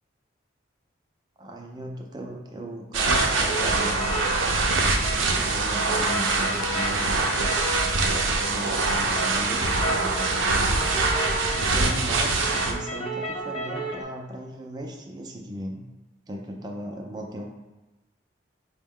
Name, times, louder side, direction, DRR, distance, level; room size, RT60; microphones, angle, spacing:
voice 1, 1.4-4.2 4.7-7.2 8.1-10.9 11.5-15.8 16.3-17.5, right 1 dB, 20° right, 0 dB, 0.4 m, -37 dB
sound 1, 2.9-12.7, right 3 dB, 85° right, 0.5 m, -24 dB
sound 2, 3.0-14.0, right 1 dB, 35° left, 0.6 m, -33 dB
4.9 x 2.1 x 3.6 m, 1.1 s
head